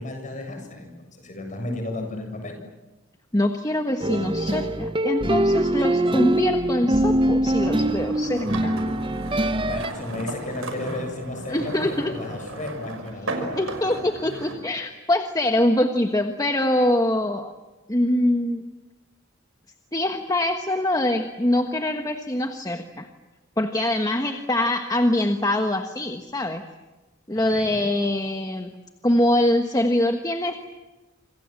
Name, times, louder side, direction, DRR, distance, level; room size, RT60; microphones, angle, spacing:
voice 1, 0.0-2.6 9.7-13.7 27.5-27.8, left 2 dB, 40° left, 4 dB, 7.7 m, -34 dB
voice 2, 3.3-8.8 11.5-12.1 13.6-17.5 17.9-18.6 19.9-23.1 23.6-26.6 27.3-28.7 29.0-30.6, left 1 dB, 20° left, 6 dB, 1.4 m, -24 dB
sound 1, 4.0-9.9, right 1 dB, 25° right, 0.9 m, -23 dB
sound 2, 7.6-14.5, right 2 dB, 80° right, 5.8 m, -35 dB
28.0 x 27.0 x 7.6 m, 1.1 s
head